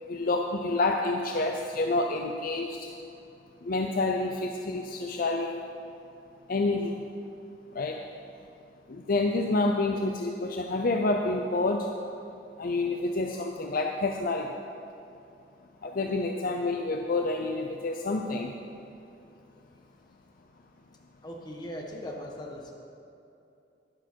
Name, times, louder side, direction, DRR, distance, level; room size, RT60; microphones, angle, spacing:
voice 1, 0.0-3.0 3.6-5.6 6.5-7.0 7.7-8.0 8.9-12.2 12.6-14.5 15.8-18.6, left 2 dB, 50° left, 3 dB, 0.6 m, -28 dB
voice 2, 21.2-22.7, left 1 dB, 25° left, -1 dB, 1.5 m, -39 dB
11.5 x 10.0 x 4.5 m, 2.7 s
head